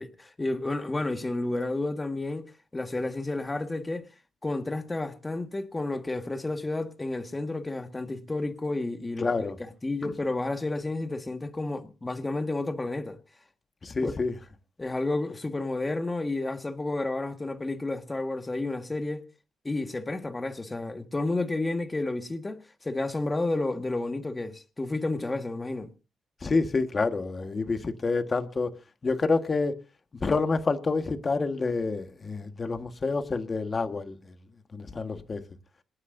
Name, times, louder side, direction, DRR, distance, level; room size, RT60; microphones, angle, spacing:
voice 1, 0.0-2.5 2.7-4.1 4.4-9.5 9.8-13.2 14.0-14.1 14.8-19.3 19.6-25.9, left 2 dB, 20° left, 1.7 m, -31 dB
voice 2, 9.2-9.6 10.0-10.1 13.8-14.3 26.4-28.7 29.0-29.8 30.2-34.2 34.7-35.4, left 3 dB, 35° left, 1.6 m, -28 dB
26.5 x 9.8 x 2.7 m
cardioid pair, 95°, 0 cm